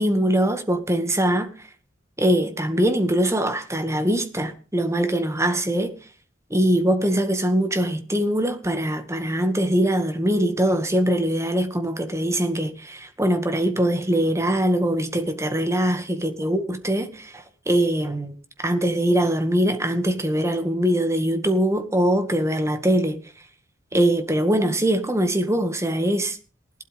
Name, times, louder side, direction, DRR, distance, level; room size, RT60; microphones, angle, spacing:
voice 1, 0.0-1.5 2.2-6.0 6.5-18.3 18.6-23.2 23.9-26.4, right 1 dB, 15° right, 2.0 m, -22 dB
18.5 x 12.5 x 3.6 m
head